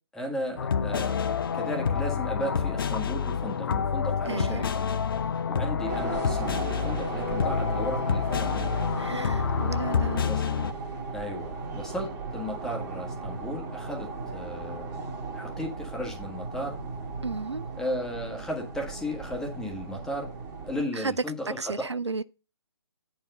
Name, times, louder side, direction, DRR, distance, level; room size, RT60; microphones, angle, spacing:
voice 1, 0.1-1.3 1.5-4.7 5.5-8.9 10.3-10.4 11.1-15.0 15.3-16.8 17.7-20.3 20.6-21.9, equal, 5° left, 1.4 m, -35 dB
sound 1, 0.6-10.7, left 6 dB, 55° left, 0.6 m, -28 dB
voice 2, 4.3-4.6 9.0-10.2 17.2-17.7 21.0-21.1 21.6-22.2, right 4 dB, 90° right, 0.5 m, -33 dB
sound 2, 5.9-20.8, right 4 dB, 20° right, 1.9 m, -36 dB
8.4 x 4.6 x 5.4 m
figure-of-eight pair, 135°, 14 cm